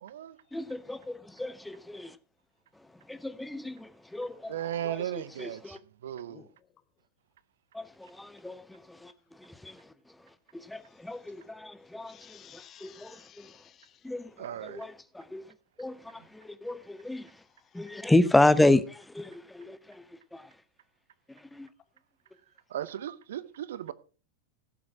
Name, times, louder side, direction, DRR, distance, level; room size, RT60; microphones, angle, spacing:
voice 1, 0.0-0.3 4.5-5.8 6.0-6.4 14.4-14.8 22.7-23.9, right 11 dB, 60° right, 0.7 m, -36 dB
voice 2, 0.5-2.1 3.1-4.6 4.8-5.8 7.7-7.8 8.2-8.6 9.0-9.1 9.6-9.7 10.7-12.1 12.8-13.2 14.0-14.2 14.7-15.4 15.8-16.0 16.4-17.2 17.7-19.8 20.3-20.4 21.5-21.7, left 2 dB, 5° left, 0.7 m, -29 dB
voice 3, 12.1-14.0, left 10 dB, 30° left, 1.2 m, -54 dB
16.0 x 7.5 x 4.7 m
figure-of-eight pair, 90°, 0 cm